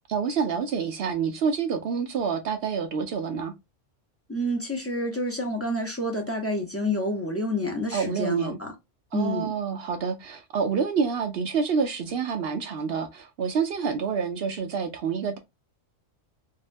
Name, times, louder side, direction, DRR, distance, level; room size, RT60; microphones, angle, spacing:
voice 1, 0.1-3.5 7.9-8.6 9.1-15.4, right 6 dB, 60° right, 0.7 m, -27 dB
voice 2, 4.3-8.7 9.1-9.5, left 1 dB, 15° left, 0.5 m, -28 dB
3.5 x 2.2 x 2.5 m
omnidirectional pair, 1.3 m